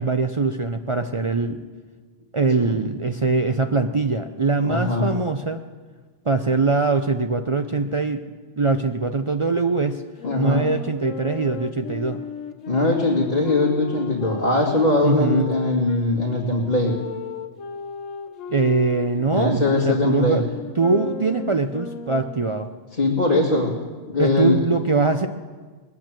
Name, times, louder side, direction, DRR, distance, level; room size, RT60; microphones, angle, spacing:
voice 1, 0.0-1.6 2.3-5.6 6.3-8.2 8.6-10.0 10.4-12.2 15.0-15.5 18.5-20.4 20.8-22.7 24.2-25.3, right 3 dB, 45° right, 7 dB, 0.4 m, -22 dB
voice 2, 4.6-5.1 10.2-10.7 12.7-16.9 19.3-20.4 23.0-23.7 24.1-24.6, left 2 dB, 35° left, -5 dB, 2.3 m, -21 dB
Wind instrument woodwind instrument, 10.2-16.0 16.8-22.6, left 5 dB, 90° left, 1.4 m, -35 dB
20.0 x 9.0 x 7.5 m, 1.4 s
omnidirectional pair, 1.3 m